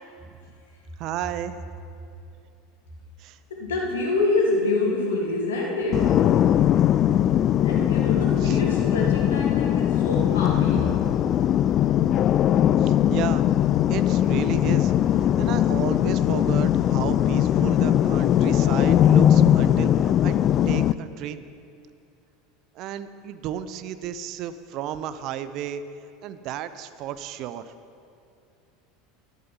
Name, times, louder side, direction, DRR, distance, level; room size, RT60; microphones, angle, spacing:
voice 1, 1.0-1.6 3.2-3.4 8.4-8.6 12.8-13.4 13.9-20.4 20.7-21.4 22.7-25.8 26.2-27.7, right 10 dB, 50° right, 12 dB, 0.6 m, -33 dB
voice 2, 3.5-6.2 7.6-11.0, left 2 dB, 70° left, -1 dB, 2.5 m, -26 dB
sound 1, 5.9-20.9, left 11 dB, 40° left, 0.3 m, -20 dB
11.5 x 11.0 x 5.6 m, 2.5 s
figure-of-eight pair, 75°, 0 cm